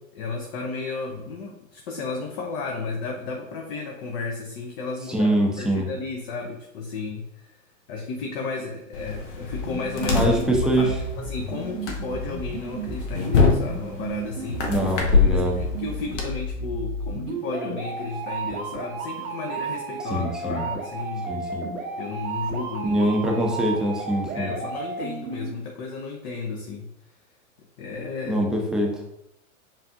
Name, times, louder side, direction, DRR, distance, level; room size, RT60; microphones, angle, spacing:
voice 1, 0.1-7.6 7.9-10.3 10.8-14.9 15.2-21.4 22.0-23.1 24.3-26.9 27.8-28.5, left 4 dB, 40° left, 1 dB, 0.7 m, -33 dB
voice 2, 5.1-5.9 10.1-10.9 14.7-15.6 20.1-20.6 21.3-21.6 22.8-24.5 28.3-28.9, right 1 dB, ahead, -1 dB, 0.6 m, -23 dB
sound 1, 8.9-16.3, left 4 dB, 55° left, 1.0 m, -25 dB
sound 2, 9.5-25.5, right 3 dB, 75° right, 1.0 m, -33 dB
7.2 x 2.5 x 2.6 m, 0.83 s
figure-of-eight pair, 100°, 42 cm